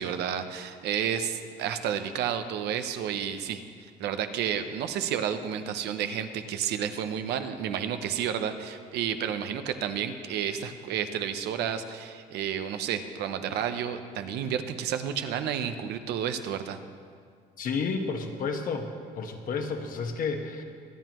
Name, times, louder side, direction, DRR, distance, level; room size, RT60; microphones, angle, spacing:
voice 1, 0.0-3.6 4.0-16.8, right 8 dB, 80° right, 9 dB, 0.8 m, -31 dB
voice 2, 17.6-18.9 19.1-20.6, left 4 dB, 55° left, 4 dB, 1.3 m, -31 dB
23.0 x 9.1 x 3.1 m, 2.1 s
cardioid pair, 110°, 17 cm